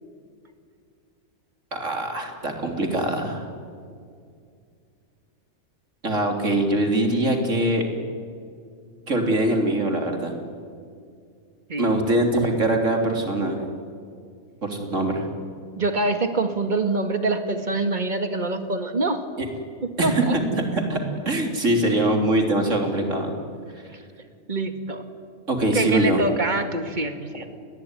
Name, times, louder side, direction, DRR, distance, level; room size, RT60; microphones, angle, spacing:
voice 1, 1.7-3.5 6.0-7.8 9.1-10.3 11.8-13.6 14.6-15.3 19.4-19.5 20.0-21.0 21.3-23.3 25.5-26.2, right 1 dB, 60° right, 3 dB, 3.9 m, -23 dB
voice 2, 15.8-19.2 19.8-20.4 24.5-25.0 25.7-27.5, right 2 dB, 35° right, 7 dB, 2.2 m, -25 dB
29.0 x 21.0 x 9.8 m, 2.3 s
omnidirectional pair, 1.5 m